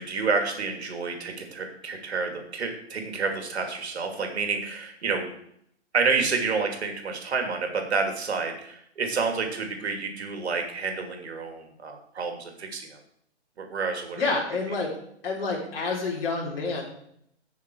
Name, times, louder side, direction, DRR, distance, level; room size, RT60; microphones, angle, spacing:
voice 1, 0.0-5.3 5.9-13.0 13.6-14.2, right 4 dB, 65° right, 3 dB, 3.0 m, -29 dB
voice 2, 14.2-14.9 15.2-16.8, left 3 dB, 55° left, -4 dB, 4.0 m, -28 dB
17.5 x 6.6 x 4.8 m, 0.71 s
hypercardioid pair, 175°, 35 cm